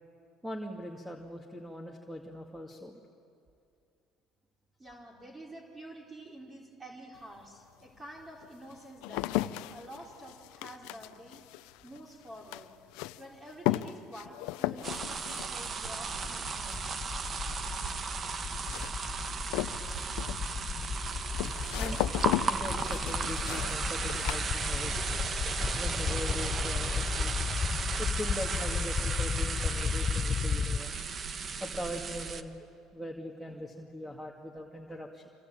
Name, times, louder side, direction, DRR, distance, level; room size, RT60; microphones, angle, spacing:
voice 1, 0.4-3.0 21.7-22.0 22.4-24.9 25.7-27.3 28.0-31.0 31.6-32.5 32.9-35.3, equal, 5° right, 1 dB, 2.2 m, -41 dB
voice 2, 4.8-11.4 11.8-12.7 13.2-16.8, right 1 dB, 20° right, -1 dB, 3.8 m, -48 dB
sound 1, 7.2-7.3 8.0-25.2 25.4-26.0, left 16 dB, 80° left, 0.7 m, -37 dB
sound 2, 14.8-32.4, right 5 dB, 40° right, 1.3 m, -35 dB
sound 3, 15.8-30.8, left 6 dB, 35° left, 0.8 m, -34 dB
26.5 x 24.5 x 9.0 m, 2.5 s
supercardioid pair, 105°, 0 cm